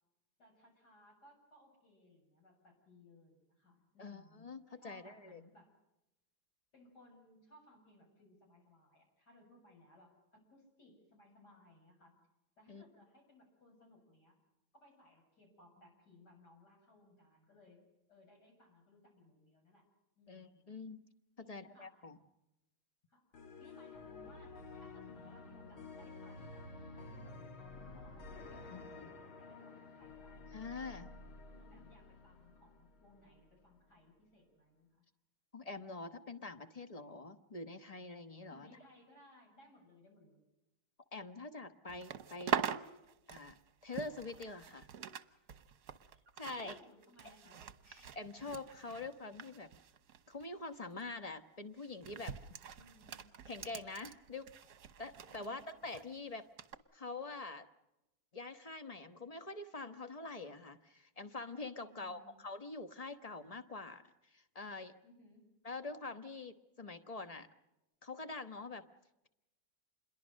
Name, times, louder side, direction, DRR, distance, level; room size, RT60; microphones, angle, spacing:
voice 1, 0.4-4.5 4.8-5.7 6.7-12.2 12.6-14.4 14.7-17.8 18.1-19.9 20.2-20.6 21.4-22.1 23.1-23.2 23.6-26.6 27.0-27.6 27.9-30.6 31.5-35.1 38.5-40.5 46.4-47.6 52.8-53.2 55.3-55.6 61.8-62.3 65.0-65.4, left 1 dB, 50° left, 1 dB, 7.7 m, -63 dB
voice 2, 4.0-5.4 12.7-12.8 20.3-21.0 21.4-22.2 28.7-29.1 30.5-31.1 35.5-38.7 41.1-42.7 43.3-43.6 43.8-44.9 46.4-46.8 47.9-49.7 50.3-52.4 53.5-54.5 55.0-56.5 56.9-57.7 58.3-64.0 64.3-64.9 65.6-67.5 68.0-68.8, left 3 dB, 25° left, 9 dB, 0.9 m, -45 dB
sound 1, 23.3-33.4, left 3 dB, 85° left, 3.1 m, -51 dB
sound 2, 41.9-45.2 45.5-50.5 50.7-51.0 51.8-56.0 56.6-56.8, right 8 dB, 60° right, 1.4 m, -43 dB
27.5 x 22.0 x 6.4 m, 0.92 s
omnidirectional pair, 2.2 m